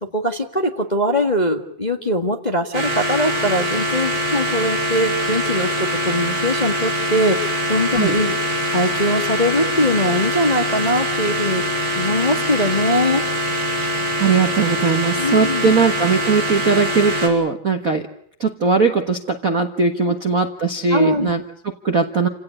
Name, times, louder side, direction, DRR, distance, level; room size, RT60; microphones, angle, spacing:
voice 1, 0.1-8.3 8.7-11.6 11.9-13.2 15.2-15.7 20.9-21.3, left 1 dB, 25° left, 4 dB, 0.9 m, -21 dB
sound 1, 2.7-17.3, equal, 35° right, 7.2 m, -23 dB
voice 2, 13.9-18.1 18.4-22.3, right 4 dB, 80° right, 6 dB, 0.7 m, -19 dB
29.0 x 17.0 x 9.9 m, 0.65 s
omnidirectional pair, 3.9 m